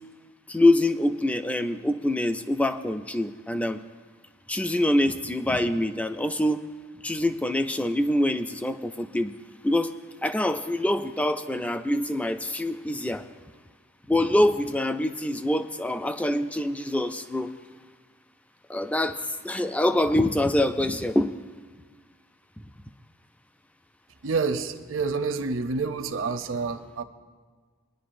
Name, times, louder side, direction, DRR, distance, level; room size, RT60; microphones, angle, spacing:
voice 1, 0.5-3.8 4.5-6.6 7.0-9.3 9.6-10.0 10.2-13.2 14.1-17.5 18.7-19.2 19.4-21.3, left 1 dB, 5° left, 9 dB, 0.3 m, -25 dB
voice 2, 24.2-27.0, right 4 dB, 65° right, 7 dB, 0.7 m, -28 dB
21.0 x 10.5 x 2.5 m, 1.5 s
head